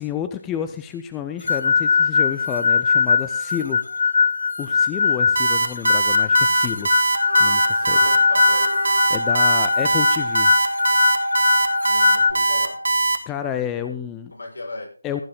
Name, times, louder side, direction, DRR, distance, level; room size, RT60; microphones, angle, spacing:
voice 1, 0.0-3.8 4.6-6.9 7.4-8.0 9.1-10.6 13.3-14.3 15.0-15.2, left 9 dB, 10° left, 9 dB, 0.5 m, -30 dB
sound 1, 1.5-12.3, left 5 dB, 55° left, 1.2 m, -21 dB
Alarm, 5.4-13.2, right 4 dB, 50° right, 1.6 m, -20 dB
Wind instrument woodwind instrument, 7.1-13.0, equal, 80° right, 1.1 m, -27 dB
voice 2, 7.9-8.8 11.8-12.8 14.3-14.9, left 2 dB, 70° left, -1 dB, 6.4 m, -35 dB
16.0 x 9.6 x 3.8 m, 0.43 s
figure-of-eight pair, 155°, 0 cm